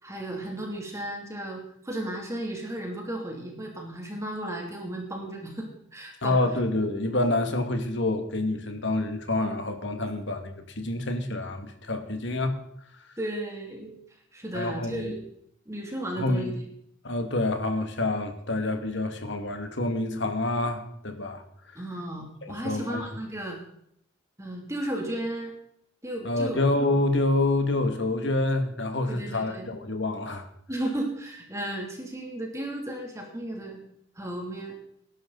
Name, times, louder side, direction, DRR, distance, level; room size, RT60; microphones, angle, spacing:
voice 1, 0.0-6.4 13.2-14.0 14.3-15.2 15.7-16.5 21.7-23.6 24.4-25.5 26.0-26.6 29.1-29.7 30.7-33.8 34.2-34.8, right 1 dB, 15° right, 0 dB, 2.8 m, -34 dB
voice 2, 6.2-12.6 14.5-15.1 16.2-16.5 17.0-21.4 22.4-23.0 26.2-30.5, left 2 dB, 65° left, 6 dB, 2.0 m, -27 dB
19.5 x 11.5 x 4.0 m, 0.70 s
head